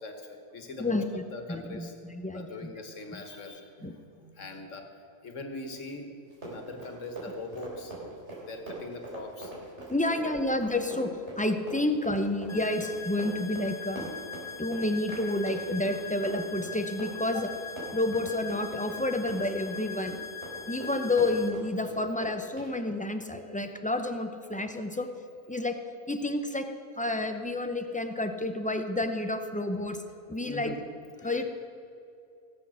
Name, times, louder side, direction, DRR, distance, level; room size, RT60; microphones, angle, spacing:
voice 1, 0.0-1.0 1.3-1.9 2.3-6.1 6.4-7.9 8.3-9.5 10.1-10.4 30.5-30.8 31.2-31.4, left 2 dB, 80° left, 5 dB, 1.7 m, -42 dB
voice 2, 0.8-1.2 1.5-2.7 3.1-3.2 3.8-3.9 9.9-11.1 11.4-14.1 14.6-17.5 17.9-20.2 20.7-25.1 25.5-25.8 26.1-26.7 27.0-30.0 30.3-30.7 31.2-31.4, left 2 dB, 10° left, 7 dB, 0.4 m, -30 dB
Run, 6.3-22.8, right 2 dB, 65° right, 3.8 m, -42 dB
sound 1, 12.5-21.5, left 7 dB, 35° left, 1.4 m, -42 dB
17.5 x 7.7 x 6.4 m, 2.5 s
omnidirectional pair, 1.3 m